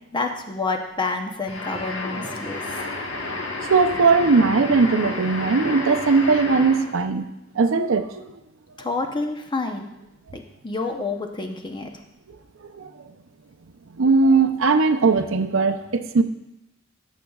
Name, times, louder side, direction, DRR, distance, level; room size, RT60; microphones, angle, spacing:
voice 1, 0.1-2.8 8.8-9.9 10.3-11.9, left 3 dB, 25° left, 4 dB, 0.7 m, -28 dB
sound 1, 1.5-7.0, left 2 dB, 70° left, 1.3 m, -31 dB
voice 2, 3.7-7.3 7.6-8.3 12.7-12.9 14.0-16.2, right 4 dB, 90° right, 8 dB, 0.6 m, -19 dB
14.5 x 6.5 x 2.4 m, 0.89 s
head